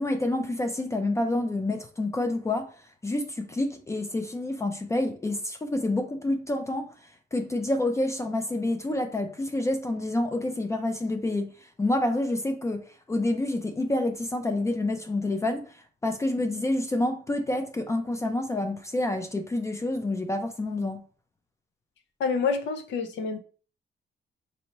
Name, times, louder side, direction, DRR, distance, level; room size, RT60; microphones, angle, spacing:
voice 1, 0.0-2.7 3.0-6.9 7.3-11.5 11.8-12.8 13.1-15.7 16.0-21.0, left 2 dB, 15° left, 0.3 m, -28 dB
voice 2, 22.2-23.4, left 5 dB, 85° left, 0.7 m, -27 dB
4.3 x 2.7 x 2.9 m
cardioid pair, 175°, 18 cm